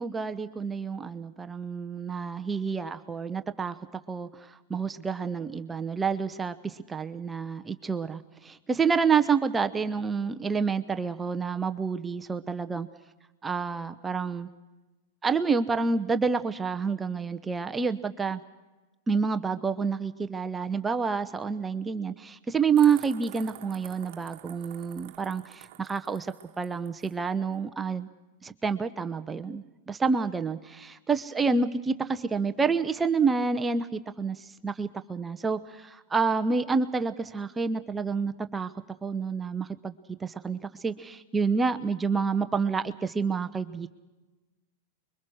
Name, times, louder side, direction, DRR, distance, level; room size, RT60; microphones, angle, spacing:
voice 1, 0.0-3.8 4.1-12.9 13.4-14.5 15.2-18.4 19.1-28.1 28.4-38.7 39.0-39.9 40.2-43.9, right 5 dB, 15° right, 9 dB, 0.9 m, -28 dB
sound 1, 22.8-27.2, right 14 dB, 55° right, 1.4 m, -49 dB
25.0 x 23.0 x 6.3 m, 1.1 s
hypercardioid pair, 110°, 0 cm